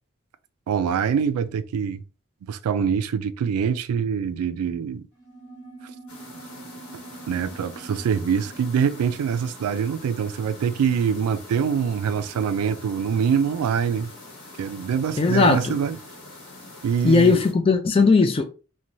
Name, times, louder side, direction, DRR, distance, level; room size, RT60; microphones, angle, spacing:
voice 1, 0.7-2.0 2.5-5.1 6.9-7.0 7.3-14.1 14.6-16.0 16.8-17.4, right 7 dB, 85° right, 0.3 m, -24 dB
sound 1, 5.1-11.1, right 3 dB, 15° right, 0.7 m, -46 dB
sound 2, 6.1-17.5, left 2 dB, 90° left, 1.0 m, -44 dB
voice 2, 15.2-15.8 17.0-18.4, left 4 dB, 25° left, 0.3 m, -18 dB
3.0 x 2.2 x 2.6 m
head